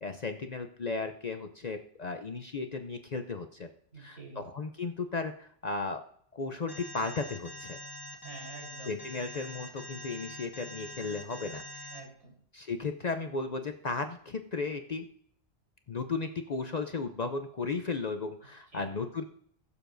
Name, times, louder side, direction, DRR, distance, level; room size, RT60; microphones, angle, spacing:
voice 1, 0.0-3.7 4.0-6.0 6.3-7.8 8.9-11.9 12.5-15.1 15.9-19.2, left 4 dB, 45° left, 7 dB, 0.6 m, -35 dB
voice 2, 3.9-4.4 8.2-9.0 11.9-12.3 18.7-19.0, right 2 dB, 80° right, -3 dB, 4.2 m, -47 dB
Alarm, 6.7-12.0, left 1 dB, 20° left, 1.5 m, -44 dB
20.5 x 7.0 x 2.6 m, 0.64 s
omnidirectional pair, 1.2 m